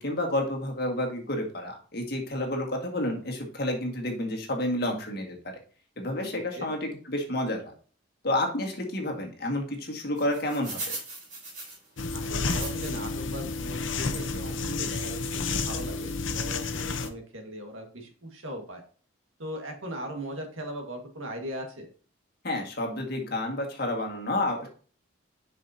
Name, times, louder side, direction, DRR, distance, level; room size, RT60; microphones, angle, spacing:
voice 1, 0.0-5.4 6.0-7.6 8.2-11.0 22.4-24.7, left 1 dB, 50° left, 1 dB, 1.8 m, -30 dB
voice 2, 6.3-6.7 12.1-18.8 19.4-21.9, equal, 85° right, 3 dB, 1.7 m, -39 dB
sound 1, 10.2-13.2 13.6-13.7 14.5-14.6 15.1-15.2 15.4-15.6, right 3 dB, 40° right, 3.4 m, -39 dB
sound 2, 12.0-17.1, left 3 dB, 75° left, 0.8 m, -31 dB
7.5 x 5.7 x 2.8 m, 0.42 s
head